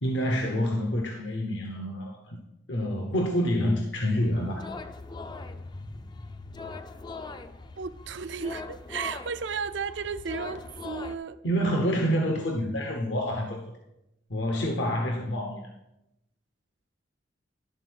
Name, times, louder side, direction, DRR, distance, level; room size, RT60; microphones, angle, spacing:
voice 1, 0.0-2.4 2.7-4.7 11.4-13.6 14.3-15.7, equal, 70° left, 1.0 m, -27 dB
sound 1, 4.1-11.2, left 3 dB, 25° left, 0.4 m, -41 dB
voice 2, 7.8-11.4, right 5 dB, 70° right, 0.5 m, -34 dB
11.0 x 4.1 x 6.3 m
head